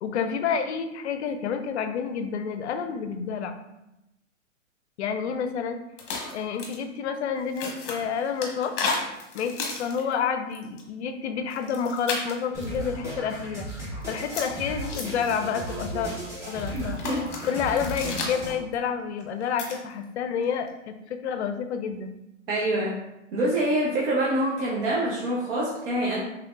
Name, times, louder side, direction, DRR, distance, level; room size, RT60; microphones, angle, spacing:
voice 1, 0.0-3.6 5.0-5.8 6.3-8.7 9.3-13.7 14.1-16.1 16.5-17.0 17.4-22.2, left 7 dB, 60° left, 7 dB, 0.5 m, -29 dB
sound 1, 6.0-6.8 7.4-10.1 10.5-10.8 11.5-12.8 14.0-15.3 16.6-18.7 19.2-19.8 20.4-20.7, left 4 dB, 45° left, 1.0 m, -34 dB
sound 2, 12.5-18.5, right 1 dB, 10° right, 0.8 m, -35 dB
voice 2, 16.7-17.2 22.5-22.9 23.3-26.2, right 1 dB, 50° right, -5 dB, 0.9 m, -25 dB
3.4 x 3.3 x 2.4 m, 0.89 s
hypercardioid pair, 130°, 37 cm